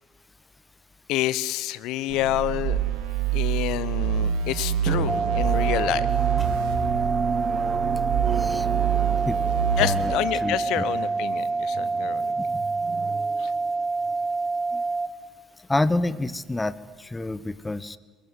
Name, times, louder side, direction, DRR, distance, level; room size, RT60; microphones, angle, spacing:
voice 1, 1.1-2.8 3.3-6.1 9.8-12.3 13.4-13.5, left 15 dB, 65° left, 18 dB, 1.0 m, -28 dB
sound 1, 2.1-10.2, right 10 dB, 70° right, 3.3 m, -26 dB
Drum, 4.9-14.1, right 8 dB, 50° right, 0.9 m, -34 dB
sound 2, 5.1-15.1, right 3 dB, 10° right, 3.4 m, -27 dB
voice 2, 8.3-8.7 9.2-9.4 9.8-10.1 10.4-10.8 12.5-12.6 14.7-14.8 15.7-18.0, left 2 dB, 15° left, 17 dB, 1.2 m, -28 dB
22.5 x 21.0 x 9.6 m, 1.3 s
hypercardioid pair, 60°, 0 cm